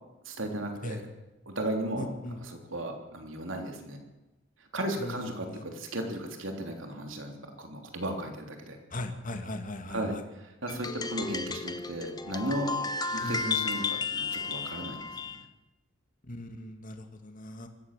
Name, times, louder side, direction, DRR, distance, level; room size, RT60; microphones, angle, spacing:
voice 1, 0.3-1.1 1.5-4.0 4.7-8.8 9.9-15.5, right 1 dB, 65° right, 3 dB, 3.4 m, -35 dB
voice 2, 2.0-2.4 5.0-5.6 8.9-10.2 13.2-13.4 16.3-17.7, left 1 dB, 40° left, 5 dB, 2.6 m, -39 dB
sound 1, 10.7-15.4, left 4 dB, 20° left, 1.1 m, -33 dB
24.5 x 15.0 x 7.5 m, 1.1 s
head